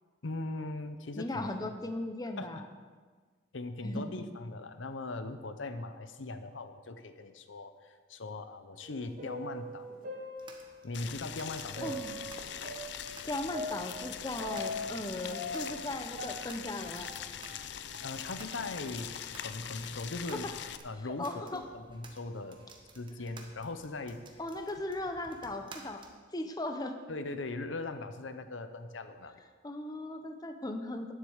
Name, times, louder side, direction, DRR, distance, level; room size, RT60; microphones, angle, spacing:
voice 1, 0.2-1.7 2.4-2.5 3.5-9.9 10.8-12.0 18.0-20.5 20.8-22.6 22.9-24.2 27.1-29.4, left 2 dB, 90° left, 9 dB, 0.8 m, -40 dB
voice 2, 1.2-2.7 3.8-4.1 11.8-12.2 13.3-17.1 20.3-20.4 21.2-21.6 24.4-26.0 26.3-27.0 29.6-31.1, left 1 dB, 20° left, 6 dB, 0.7 m, -37 dB
sound 1, 8.8-11.0 11.8-15.0 15.3-17.7 17.9-18.0 18.8-18.9 19.7-19.9 20.5-20.6 21.4-21.7, left 1 dB, 45° right, 1.8 m, -42 dB
sound 2, 10.4-26.1, right 3 dB, 25° right, 1.2 m, -56 dB
Boiling, 10.9-20.8, left 9 dB, 65° left, 0.5 m, -42 dB
9.9 x 8.1 x 7.2 m, 1.5 s
head